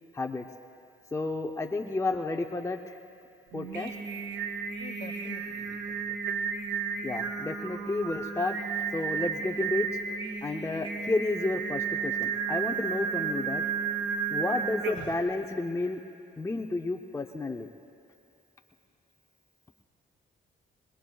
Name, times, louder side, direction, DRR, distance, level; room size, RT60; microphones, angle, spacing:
voice 1, 0.1-0.4 1.1-3.0 3.5-3.9 7.0-10.0 10.4-13.6 14.3-16.0 16.4-17.7, left 2 dB, 15° left, 2 dB, 0.7 m, -31 dB
Singing, 3.5-15.3, right 6 dB, 70° right, 1.2 m, -33 dB
voice 2, 4.8-6.4, left 6 dB, 50° left, 7 dB, 1.1 m, -48 dB
24.5 x 20.5 x 2.3 m, 2.8 s
cardioid pair, 90°, 20 cm